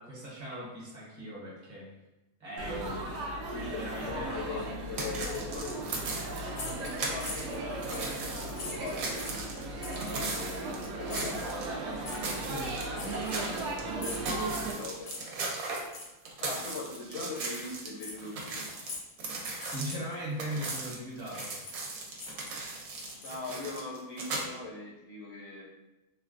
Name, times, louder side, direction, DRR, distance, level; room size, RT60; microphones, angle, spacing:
voice 1, 0.0-1.9 2.4-3.0 3.6-4.3 12.5-12.7 19.6-21.5, equal, 35° right, -5 dB, 0.8 m, -39 dB
Laughter / Chatter / Crowd, 2.6-14.7, right 2 dB, 90° right, 0.6 m, -37 dB
voice 2, 3.5-6.0 6.8-11.7 12.0-14.3 14.7-15.2 16.4-18.6 23.2-25.7, left 3 dB, 70° left, -5 dB, 0.7 m, -41 dB
sound 1, 4.9-7.5 7.8-11.7 12.1-13.8 14.1-17.9 18.2-24.4, right 3 dB, 70° right, 1.0 m, -38 dB
sound 2, 6.5-7.6 7.9-8.1 8.5-9.4 9.8-10.2 11.1-11.4 12.0-12.2 12.9-13.7 14.0-14.3 15.0-15.4 15.9-16.1 16.7-17.0 17.4-17.5 18.0-18.2 18.8-19.2 19.5-20.2 20.7-20.8 21.3-21.9 22.1-23.7, left 3 dB, 85° left, 1.2 m, -43 dB
3.7 x 2.2 x 2.5 m, 1.0 s
omnidirectional pair, 1.7 m